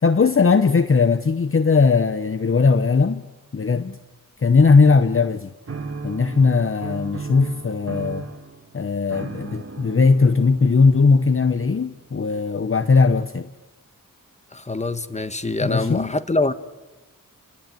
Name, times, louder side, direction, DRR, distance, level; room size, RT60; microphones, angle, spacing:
voice 1, 0.0-3.2 3.5-4.0 4.4-5.5 6.0-8.2 8.7-13.5 15.6-16.1, left 4 dB, 40° left, 0.9 m, -18 dB
sound 1, 5.7-12.1, right 4 dB, 40° right, 2.0 m, -36 dB
voice 2, 14.5-16.5, left 2 dB, 20° left, 1.4 m, -24 dB
30.0 x 18.5 x 9.1 m
wide cardioid pair, 85°, 34 cm